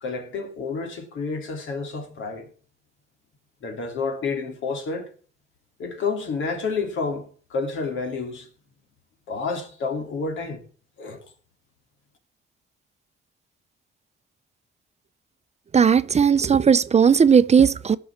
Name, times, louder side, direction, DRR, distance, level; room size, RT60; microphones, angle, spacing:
voice 1, 0.0-2.5 3.6-5.1 5.8-8.5 9.3-10.6 11.0-11.2, left 4 dB, 75° left, 3.0 m, -29 dB
voice 2, 15.7-18.0, right 7 dB, 35° right, 0.6 m, -17 dB
17.0 x 6.2 x 7.3 m
cardioid pair, 90°, 20 cm